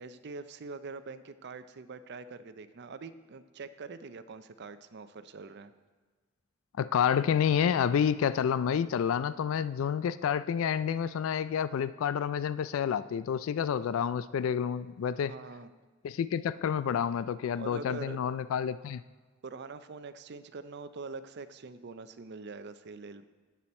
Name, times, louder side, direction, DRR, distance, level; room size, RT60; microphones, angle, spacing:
voice 1, 0.0-5.7 15.3-15.7 17.5-18.2 19.4-23.3, right 4 dB, 60° right, 12 dB, 0.5 m, -44 dB
voice 2, 6.8-15.3 16.0-19.0, left 8 dB, 90° left, 15 dB, 0.3 m, -29 dB
11.5 x 8.3 x 4.3 m, 1.4 s
head